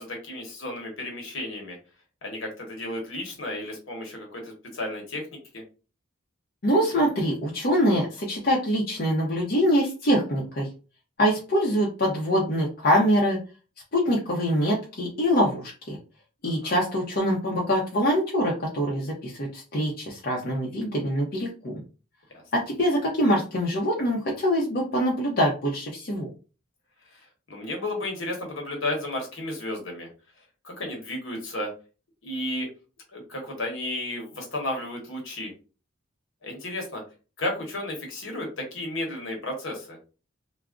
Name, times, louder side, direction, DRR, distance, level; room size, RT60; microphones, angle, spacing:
voice 1, 0.0-1.8 2.2-5.6 16.4-16.7 27.1-27.2 27.5-30.1 30.6-31.7 32.2-32.7 33.1-35.5 36.4-37.0 37.4-40.0, left 1 dB, 70° left, 1 dB, 1.0 m, -33 dB
voice 2, 6.6-10.7 11.2-13.4 13.9-16.0 16.4-21.8 22.5-26.3, equal, 45° left, -4 dB, 0.6 m, -24 dB
2.3 x 2.0 x 3.6 m, 0.35 s
head